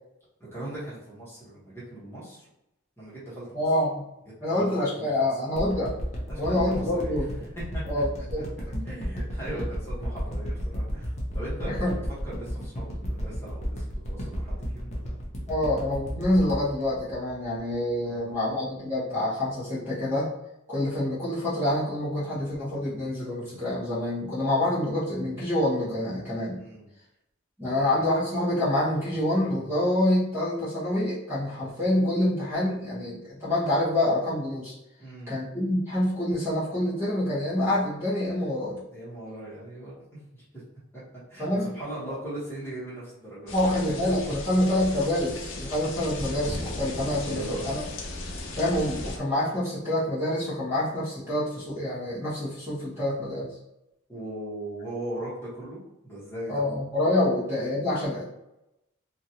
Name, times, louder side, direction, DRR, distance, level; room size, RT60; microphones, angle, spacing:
voice 1, 0.5-2.5 3.0-3.6 4.6-4.7 4.9-5.3 6.3-7.1 7.7-7.8 8.9-12.0 12.2-15.2 18.0-18.4 26.5-26.9 27.6-28.1 35.0-35.4 38.9-40.4 41.3-43.7 47.2-47.7 54.1-56.6, right 1 dB, 15° left, -9 dB, 1.2 m, -39 dB
voice 2, 3.5-4.0 4.4-5.9 6.4-7.3 7.9-8.5 11.6-11.9 15.5-20.3 20.7-26.6 27.6-34.7 35.3-38.8 41.4-41.7 42.1-42.2 43.5-47.8 48.6-53.5 56.5-58.2, left 1 dB, 15° right, -10 dB, 1.0 m, -27 dB
sound 1, 5.6-17.9 18.3-18.4, equal, 35° left, 0.7 m, -32 dB
sound 2, 43.5-49.2, left 2 dB, 75° left, 0.5 m, -36 dB
2.9 x 2.5 x 2.8 m, 0.86 s
head